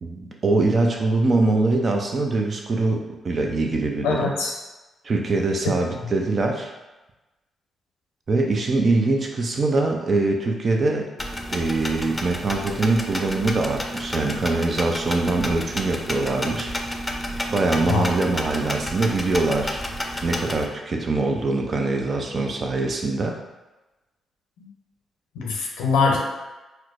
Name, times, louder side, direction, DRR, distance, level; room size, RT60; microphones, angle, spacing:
voice 1, 0.0-4.3 5.0-6.7 8.3-11.1 11.5-16.7 17.5-19.8 20.2-23.4, right 3 dB, 50° right, 2 dB, 0.6 m, -23 dB
voice 2, 4.0-4.5 5.6-5.7 6.0-6.1 17.9-18.0 25.4-26.2, left 4 dB, 85° left, -1 dB, 0.6 m, -22 dB
sound 1, 11.2-20.7, equal, 20° left, 0.5 m, -31 dB
4.4 x 2.2 x 2.5 m, 1.1 s
hypercardioid pair, 45°, 0 cm